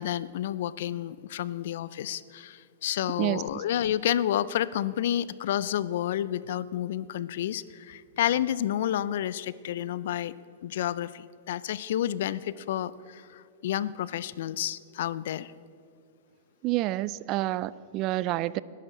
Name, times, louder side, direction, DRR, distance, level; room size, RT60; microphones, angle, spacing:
voice 1, 0.0-10.3 10.6-15.5, left 11 dB, 65° left, 18 dB, 0.4 m, -30 dB
voice 2, 3.2-3.6 16.6-18.6, right 16 dB, 40° right, 19 dB, 0.3 m, -29 dB
19.5 x 11.0 x 3.9 m, 2.3 s
hypercardioid pair, 110°, 0 cm